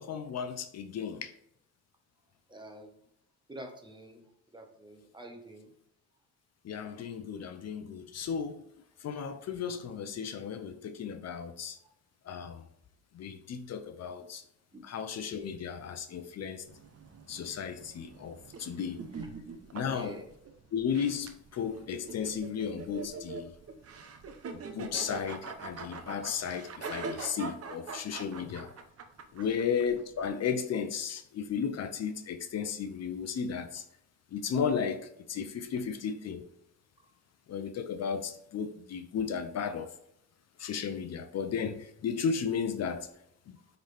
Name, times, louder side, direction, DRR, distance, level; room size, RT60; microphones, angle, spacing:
voice 1, 0.0-1.3 6.6-8.6 9.0-11.8 12.3-12.6 13.1-14.4 14.8-16.6 17.3-19.0 19.7-20.2 20.7-23.5 24.5-28.7 29.3-33.8 34.3-36.5 37.5-40.0 40.6-43.1 43.5-43.6, left 6 dB, 55° left, 0.7 m, -34 dB
voice 2, 2.5-3.0 3.5-5.7 12.3-12.4 14.7-14.8 19.9-20.3 28.3-28.5 29.4-29.6 37.0-37.1, right 1 dB, 15° right, 1.4 m, -48 dB
sound 1, 16.7-30.3, right 4 dB, 50° right, 0.9 m, -43 dB
9.5 x 4.0 x 3.5 m
cardioid pair, 90°, 30 cm